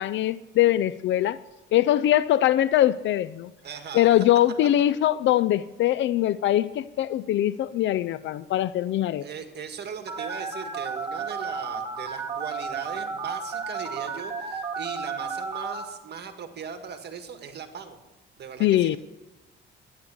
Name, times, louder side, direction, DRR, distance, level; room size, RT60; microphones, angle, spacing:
voice 1, 0.0-1.4 1.7-3.5 3.9-9.3 18.6-19.0, left 13 dB, 70° left, 0.4 m, -22 dB
voice 2, 3.6-4.1 9.2-18.0 18.4-19.0, right 6 dB, 55° right, 1.7 m, -38 dB
Telephone, 10.1-15.8, right 5 dB, 25° right, 2.1 m, -33 dB
12.5 x 9.6 x 7.0 m
cardioid pair, 90°, 20 cm